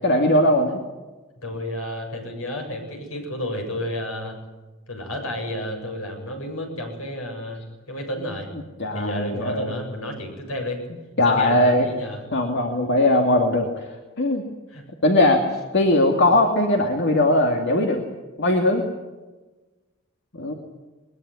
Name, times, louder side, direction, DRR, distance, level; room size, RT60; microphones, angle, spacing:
voice 1, 0.0-0.7 8.8-9.7 11.2-11.9 12.3-14.5 15.0-15.4 15.7-18.0 18.4-18.8 20.3-20.5, left 1 dB, 55° left, 3 dB, 2.3 m, -19 dB
voice 2, 1.4-4.4 4.9-8.5 8.9-10.8 11.3-12.2 14.7-14.8, left 1 dB, 80° left, 3 dB, 7.6 m, -31 dB
21.5 x 21.0 x 9.6 m, 1.2 s
head